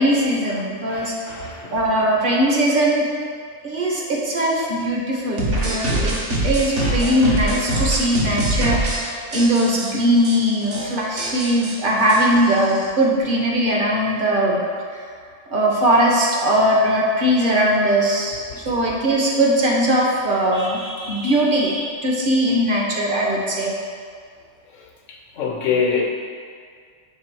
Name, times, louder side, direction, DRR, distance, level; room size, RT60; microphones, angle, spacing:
voice 1, 0.0-1.1 1.7-3.1 3.6-14.6 15.5-23.7, equal, 45° right, -2 dB, 1.0 m, -20 dB
voice 2, 0.9-1.8 18.5-18.6 25.1-26.1, left 5 dB, 70° left, 1 dB, 1.1 m, -25 dB
sound 1, 5.4-9.0 9.3-9.9 10.2-10.4 10.6-10.8 11.2-12.9, right 1 dB, 65° right, 1.3 m, -23 dB
6.0 x 3.5 x 4.7 m, 2.1 s
omnidirectional pair, 1.4 m